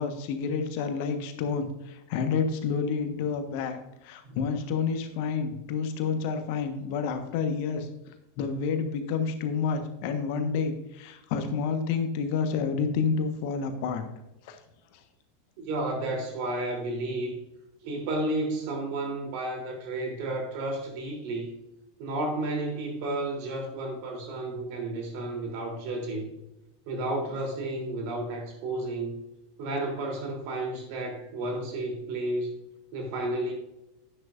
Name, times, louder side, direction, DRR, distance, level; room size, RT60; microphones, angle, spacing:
voice 1, 0.0-3.8 4.0-7.9 8.4-14.1 14.4-14.6, left 5 dB, 50° left, 7 dB, 1.2 m, -29 dB
voice 2, 15.6-17.4 17.8-21.5 22.0-26.3 26.8-29.2 29.6-32.5 32.9-33.5, right 2 dB, 50° right, 2 dB, 3.2 m, -32 dB
10.5 x 10.5 x 2.6 m, 0.91 s
figure-of-eight pair, 85°, 0 cm